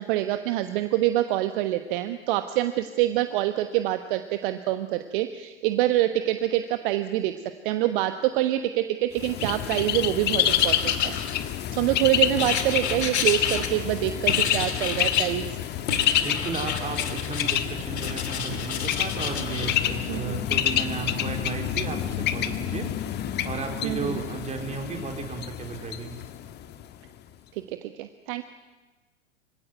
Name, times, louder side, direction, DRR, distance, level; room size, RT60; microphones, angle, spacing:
voice 1, 0.0-7.3 7.6-11.1 11.7-15.5 20.1-20.4 23.8-24.2 27.5-28.4, right 14 dB, 50° right, 9 dB, 1.2 m, -26 dB
Bird, 9.2-26.9, left 11 dB, 30° left, 1.4 m, -28 dB
Writing, 10.4-11.8 12.4-14.0 14.3-15.4 15.9-17.6 17.9-19.8, left 7 dB, 70° left, 2.6 m, -31 dB
voice 2, 16.2-22.9 23.4-26.1, right 5 dB, 20° right, 3 dB, 3.8 m, -34 dB
25.0 x 16.5 x 9.2 m, 1.3 s
figure-of-eight pair, 95°, 35 cm